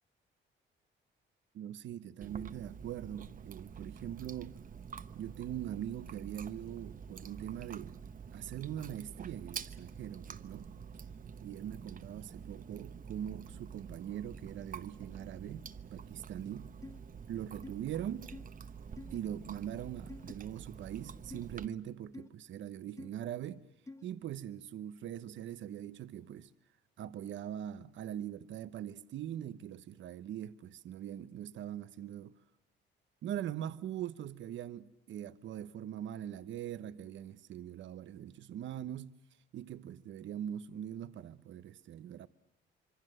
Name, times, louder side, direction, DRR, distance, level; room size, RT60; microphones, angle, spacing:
voice 1, 1.5-4.6 5.1-8.0 8.3-10.7 11.4-15.7 15.9-16.7 17.3-18.3 19.1-23.6 24.0-26.5 27.0-32.3 33.2-39.2 39.5-42.3, right 10 dB, 70° right, 0.9 m, -42 dB
Chewing mastication, 2.2-21.7, right 6 dB, 45° right, 1.1 m, -48 dB
sound 1, 16.8-17.0 17.6-17.7 18.3-18.4 19.0-19.2 20.1-20.3 21.3-21.5 22.1-22.3 23.0-23.1 23.9-24.0, left 2 dB, 15° left, 1.2 m, -47 dB
26.5 x 24.0 x 7.8 m
cardioid pair, 90°, 20 cm